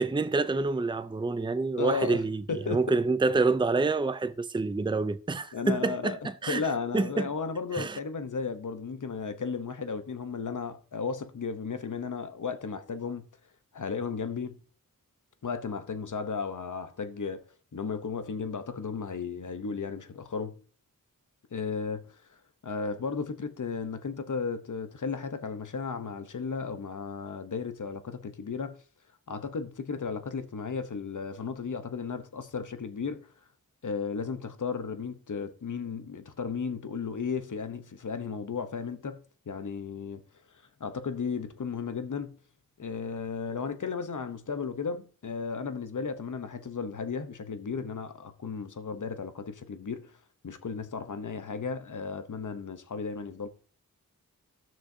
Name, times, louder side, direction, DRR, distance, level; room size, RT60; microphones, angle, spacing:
voice 1, 0.0-6.7 6.9-7.3 7.7-8.0, right 3 dB, 15° right, 0.5 m, -27 dB
voice 2, 1.8-2.2 2.5-2.8 5.5-6.2 6.5-13.3 13.7-14.6 15.4-17.4 17.7-20.6 21.5-22.1 22.6-28.8 29.3-33.3 33.8-40.2 40.8-42.4 42.8-50.1 50.4-53.5, left 5 dB, 60° left, 1.0 m, -34 dB
15.5 x 6.3 x 2.8 m
wide cardioid pair, 65°, 34 cm